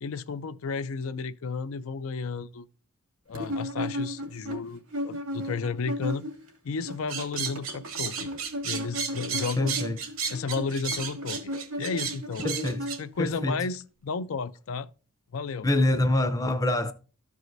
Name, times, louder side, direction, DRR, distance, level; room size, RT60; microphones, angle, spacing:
voice 1, 0.0-2.7 3.3-6.2 6.6-8.3 8.6-9.8 10.3-11.5 11.8-12.5 13.0-14.9 15.3-15.7, left 4 dB, 70° left, 0.4 m, -32 dB
sound 1, 3.3-6.5 6.7-13.4, equal, 80° right, 2.4 m, -35 dB
sound 2, 7.1-13.0, right 6 dB, 65° right, 1.3 m, -33 dB
voice 2, 9.6-10.0 12.4-12.9 13.2-13.6 15.6-16.9, left 1 dB, 15° left, 0.5 m, -25 dB
14.0 x 4.8 x 2.6 m
head